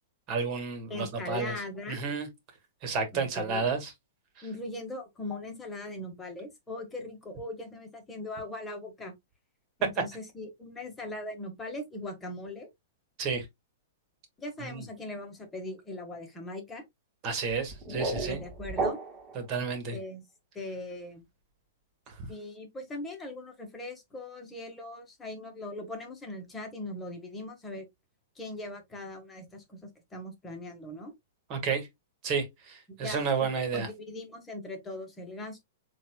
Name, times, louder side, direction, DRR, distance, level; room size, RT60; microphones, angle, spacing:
voice 1, 0.3-1.5 1.9-2.3 2.8-3.9 13.2-13.4 14.6-14.8 17.2-18.4 19.3-20.0 31.5-31.9 32.2-33.9, right 5 dB, 40° right, 1.7 m, -31 dB
voice 2, 0.9-2.0 3.1-3.7 4.4-9.1 9.8-12.7 14.4-16.8 18.3-19.0 19.9-20.2 20.5-21.2 22.3-27.9 28.3-31.1 32.9-33.5 33.7-35.6, left 2 dB, 15° left, 1.6 m, -40 dB
sound 1, 17.5-19.4, right 3 dB, 15° right, 2.3 m, -33 dB
7.2 x 2.7 x 2.3 m
hypercardioid pair, 120°, 0 cm